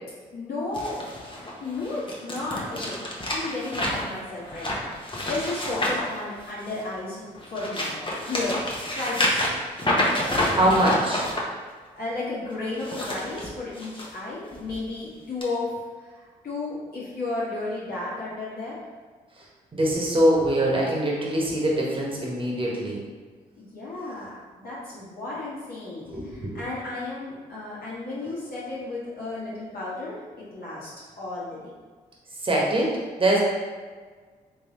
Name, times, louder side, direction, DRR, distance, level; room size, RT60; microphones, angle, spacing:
voice 1, 0.3-1.0 1.4-8.0 8.3-8.6 8.9-9.4 12.0-15.7 16.1-18.8 23.6-30.9 31.2-31.7, left 2 dB, 55° left, -8 dB, 1.4 m, -33 dB
sound 1, 0.7-6.9 7.3-11.4 12.7-14.1 14.5-14.8 15.4-15.5, left 1 dB, 25° left, 1.0 m, -28 dB
voice 2, 10.5-11.3 19.4-19.5 19.7-23.0 26.0-26.6 32.4-33.4, right 1 dB, 30° right, -3 dB, 1.3 m, -23 dB
3.6 x 3.3 x 3.0 m, 1.5 s
hypercardioid pair, 45°, 18 cm